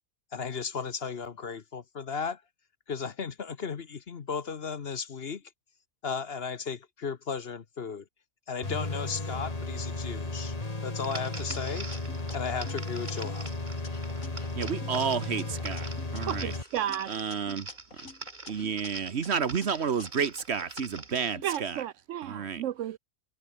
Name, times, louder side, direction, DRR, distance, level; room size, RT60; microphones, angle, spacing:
voice 1, 0.3-2.4 2.9-5.4 6.0-8.0 8.5-10.5 10.8-11.9 12.3-13.5, left 5 dB, 50° left, 1.2 m, -35 dB
sound 1, 8.6-16.6, left 2 dB, 25° left, 2.3 m, -35 dB
sound 2, 11.0-21.2, right 3 dB, 35° right, 2.3 m, -45 dB
sound 3, 11.2-13.5 13.8-16.2 16.5-18.9 19.2-21.6, left 4 dB, 75° left, 3.0 m, -49 dB
voice 2, 14.5-16.5 17.1-17.7 18.0-18.1 18.5-21.8 22.2-22.6, right 6 dB, 55° right, 1.3 m, -31 dB
voice 3, 16.3-17.1 21.4-23.0, right 11 dB, 70° right, 0.9 m, -33 dB
omnidirectional pair, 1.4 m